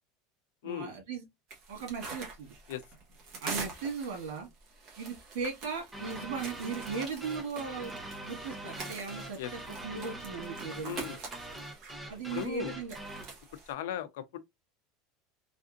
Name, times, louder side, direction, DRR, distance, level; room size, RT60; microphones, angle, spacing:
voice 1, 0.6-1.2 1.7-2.5 3.4-4.5 5.0-7.9 8.2-11.0 12.1-13.0, right 5 dB, 85° right, 1.8 m, -37 dB
sound 1, 1.5-13.7, right 4 dB, 40° right, 1.1 m, -45 dB
sound 2, 5.9-13.4, right 1 dB, 5° right, 0.6 m, -43 dB
voice 2, 10.8-11.2 12.3-12.8 13.7-14.4, left 10 dB, 85° left, 0.4 m, -37 dB
3.4 x 2.4 x 2.4 m
supercardioid pair, 165°, 0 cm